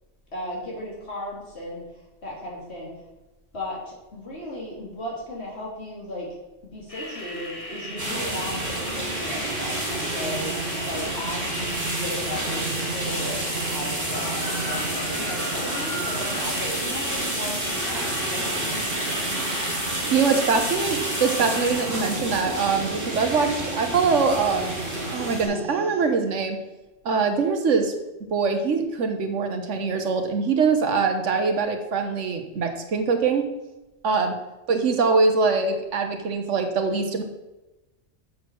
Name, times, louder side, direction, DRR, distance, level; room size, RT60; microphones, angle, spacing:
voice 1, 0.3-1.8 2.2-2.9 3.5-6.3 6.7-13.4 13.7-19.3, left 1 dB, 60° left, -4 dB, 3.0 m, -36 dB
sound 1, 6.9-21.9, left 1 dB, 30° left, 1.6 m, -38 dB
sound 2, 7.8-26.1, right 4 dB, 45° right, 1.1 m, -35 dB
sound 3, 8.0-25.4, right 1 dB, 15° right, 2.5 m, -30 dB
voice 2, 20.1-24.8 25.1-26.6 27.0-27.9 28.3-33.5 34.0-34.4 34.7-37.2, right 4 dB, 85° right, 6 dB, 1.4 m, -23 dB
7.3 x 6.3 x 6.0 m, 1.0 s
omnidirectional pair, 1.2 m